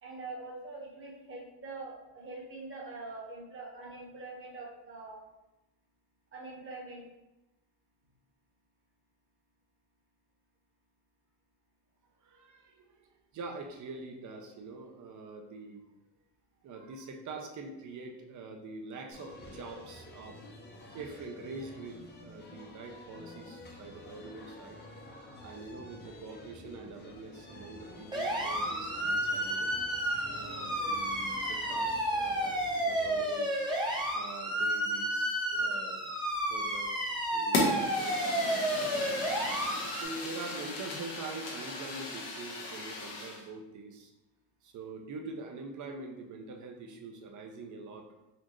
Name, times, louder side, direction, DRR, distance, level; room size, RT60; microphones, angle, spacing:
voice 1, 0.0-5.2 6.3-7.0 23.9-24.0, right 3 dB, 30° right, -2 dB, 1.1 m, -44 dB
voice 2, 12.2-15.9 16.6-20.4 20.9-24.8 25.0-29.8 30.2-33.5 34.1-36.1 36.4-37.0 37.3-39.2 39.9-44.1 44.6-48.1, right 3 dB, 45° right, 4 dB, 0.6 m, -45 dB
sound 1, 19.1-33.2, left 2 dB, 25° left, 0.7 m, -49 dB
sound 2, 28.1-40.0, right 1 dB, 10° right, 0.7 m, -31 dB
Fire, 37.5-43.4, left 2 dB, 75° left, 1.2 m, -36 dB
4.2 x 2.5 x 3.0 m, 0.96 s
cardioid pair, 115°, 42 cm